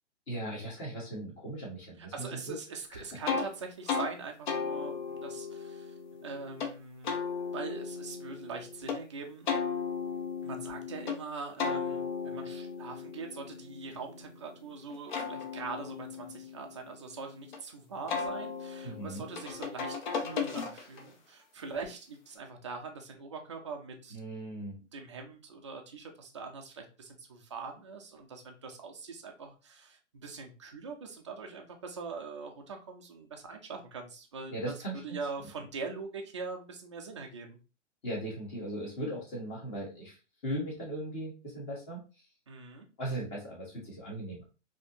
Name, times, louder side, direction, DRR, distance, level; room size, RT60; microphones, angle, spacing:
voice 1, 0.3-2.5 2.9-3.0 18.8-19.2 24.1-24.7 34.5-35.2 38.0-40.2 40.4-42.0 43.0-44.4, right 1 dB, 15° left, -4 dB, 1.2 m, -38 dB
voice 2, 2.0-9.5 10.4-24.2 24.8-34.6 34.9-37.6 42.5-42.9, right 4 dB, 25° right, 2 dB, 0.4 m, -42 dB
sound 1, 3.3-3.5 3.9-4.1 4.5-6.7 7.0-9.0 9.5-11.2 11.6-14.5 14.9-17.6 18.1-21.1, left 5 dB, 40° left, 0.7 m, -36 dB
4.0 x 2.8 x 2.6 m, 0.33 s
hypercardioid pair, 160°, 37 cm